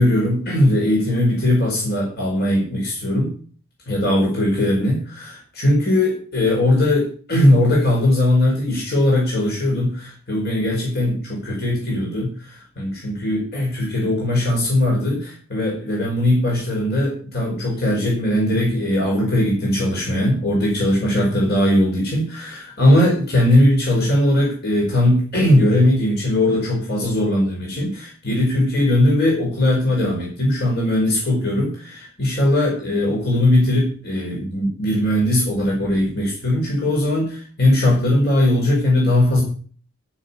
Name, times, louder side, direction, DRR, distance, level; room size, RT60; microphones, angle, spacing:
voice 1, 0.0-3.3 3.9-39.4, left 1 dB, 50° left, -2 dB, 4.9 m, -19 dB
13.5 x 6.6 x 8.4 m, 0.43 s
head